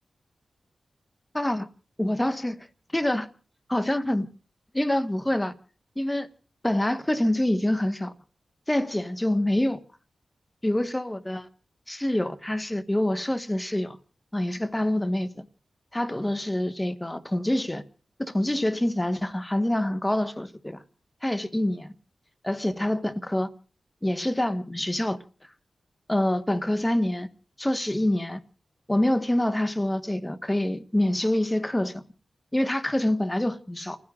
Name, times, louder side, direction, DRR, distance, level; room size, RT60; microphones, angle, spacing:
voice 1, 1.3-1.7 2.0-2.6 2.9-3.3 3.7-4.3 4.7-5.5 6.0-6.3 6.6-8.1 8.7-9.8 10.6-11.5 11.9-14.0 14.3-15.4 15.9-17.8 18.2-20.8 21.2-21.9 22.4-23.5 24.0-25.2 26.1-27.3 27.6-28.4 28.9-32.0 32.5-34.0, left 1 dB, 15° left, 1.3 m, -26 dB
29.5 x 15.5 x 2.4 m
cardioid pair, 50°, 0 cm